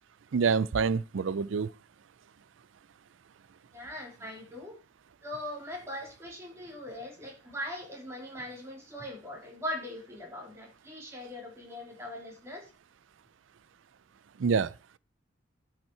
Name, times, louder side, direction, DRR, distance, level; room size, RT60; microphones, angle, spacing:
voice 1, 0.3-1.7 14.4-14.7, right 5 dB, 80° right, 0.4 m, -26 dB
voice 2, 3.7-4.8 5.2-12.7, left 1 dB, 15° right, 3.3 m, -40 dB
12.0 x 5.8 x 4.6 m
head